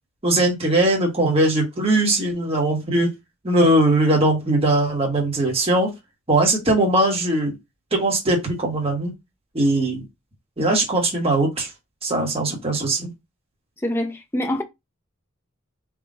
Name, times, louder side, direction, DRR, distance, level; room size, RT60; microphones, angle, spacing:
voice 1, 0.2-3.1 3.4-5.9 6.3-7.5 7.9-9.1 9.5-10.0 10.6-11.7 12.0-13.1, right 1 dB, 30° right, 1.3 m, -20 dB
voice 2, 13.8-14.6, left 1 dB, 10° left, 0.6 m, -25 dB
3.7 x 2.4 x 3.7 m
head